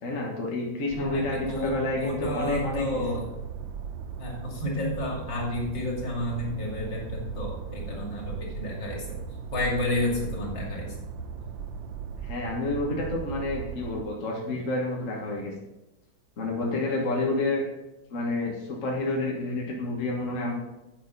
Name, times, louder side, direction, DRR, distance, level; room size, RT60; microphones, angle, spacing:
voice 1, 0.0-3.0 12.2-15.5 16.4-17.6 18.1-20.5, left 2 dB, 45° left, -1 dB, 1.8 m, -29 dB
sound 1, 0.9-14.0, right 6 dB, 85° right, 1.5 m, -38 dB
voice 2, 1.0-3.2 4.2-9.1 9.5-10.9, left 1 dB, 70° left, -2 dB, 3.3 m, -31 dB
10.5 x 9.0 x 4.1 m, 0.96 s
omnidirectional pair, 2.0 m